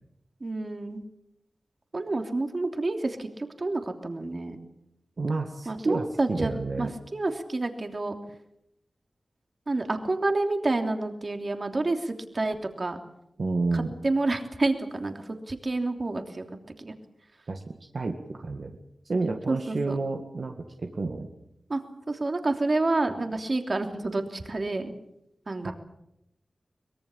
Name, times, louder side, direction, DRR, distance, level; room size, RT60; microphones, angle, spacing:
voice 1, 0.4-1.0 1.9-4.6 5.6-6.5 6.8-8.2 9.7-13.0 13.7-16.4 16.8-16.9 19.5-20.0 21.7-24.9 25.5-25.7, right 2 dB, 45° right, 5 dB, 3.1 m, -29 dB
voice 2, 5.2-6.9 13.4-13.9 17.5-18.7 19.0-21.3 25.6-25.7, right 3 dB, 65° right, 3 dB, 2.0 m, -30 dB
24.0 x 21.5 x 7.2 m, 0.81 s
wide cardioid pair, 85°, 0 cm